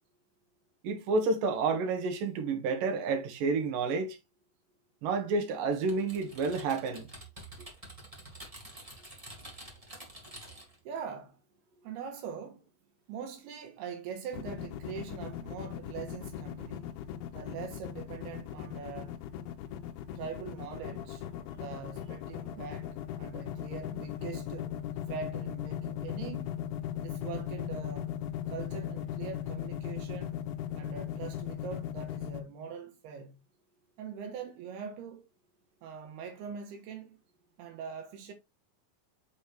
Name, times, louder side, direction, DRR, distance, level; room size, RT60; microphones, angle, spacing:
voice 1, 0.8-4.2 5.0-7.1, right 4 dB, 65° right, 2.8 m, -30 dB
Typing, 5.9-10.8, right 1 dB, 20° right, 0.8 m, -48 dB
voice 2, 10.8-11.4 11.8-12.7 13.1-17.0 17.3-19.2 20.2-21.3 21.5-24.8 25.1-26.5 27.0-28.1 28.5-30.4 30.7-33.4 34.0-35.3 35.8-37.2 37.6-38.3, right 7 dB, 80° right, 3.1 m, -42 dB
sound 1, 14.3-32.4, left 11 dB, 85° left, 2.7 m, -37 dB
7.0 x 4.3 x 3.3 m
omnidirectional pair, 4.6 m